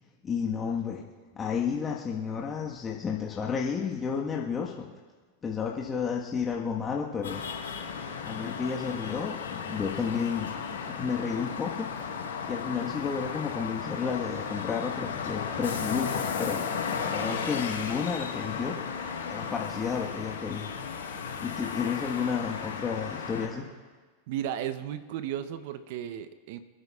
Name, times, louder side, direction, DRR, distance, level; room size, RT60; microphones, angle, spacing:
voice 1, 0.2-1.0 1.3-4.9 5.4-7.4 8.2-10.5 10.8-11.9 12.5-16.6 17.1-18.7 19.3-20.7 21.4-23.6, left 6 dB, 25° left, -2 dB, 1.3 m, -31 dB
sound 1, 7.2-23.4, left 6 dB, 75° left, 4.2 m, -35 dB
voice 2, 24.3-26.6, right 10 dB, 60° right, 12 dB, 0.7 m, -35 dB
29.0 x 9.6 x 2.4 m, 1.4 s
hypercardioid pair, 95°, 0 cm